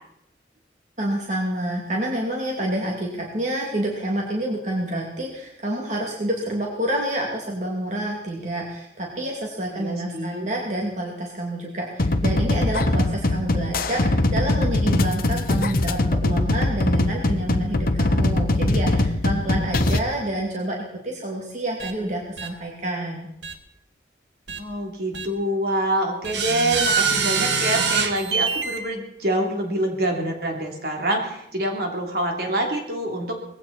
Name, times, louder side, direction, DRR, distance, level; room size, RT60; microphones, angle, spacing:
voice 1, 1.0-20.8 21.0-23.3, right 1 dB, 40° right, -1 dB, 2.6 m, -28 dB
voice 2, 9.7-10.5 24.6-33.4, right 1 dB, 55° right, 1 dB, 3.3 m, -26 dB
sound 1, 12.0-20.0, left 2 dB, 50° left, 0.9 m, -22 dB
sound 2, 21.8-21.9 22.4-22.5 23.4-23.5 24.5-24.6 25.1-25.3 26.2-28.8, right 5 dB, 75° right, 1.6 m, -24 dB
20.0 x 16.0 x 4.3 m, 0.79 s
head